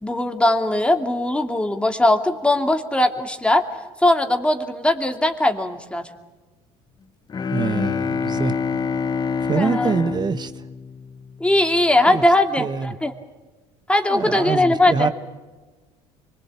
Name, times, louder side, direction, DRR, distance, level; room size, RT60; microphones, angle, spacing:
voice 1, 0.0-3.6 4.0-6.0 9.6-9.9 11.4-13.1 13.9-15.1, left 1 dB, 10° left, 2.5 m, -19 dB
Bowed string instrument, 7.3-11.6, left 5 dB, 30° left, 0.9 m, -26 dB
voice 2, 7.5-8.5 9.4-10.6 12.1-12.2 12.6-12.9 14.1-15.1, right 6 dB, 30° right, 1.3 m, -25 dB
25.0 x 22.0 x 8.6 m
supercardioid pair, 95°, 13 cm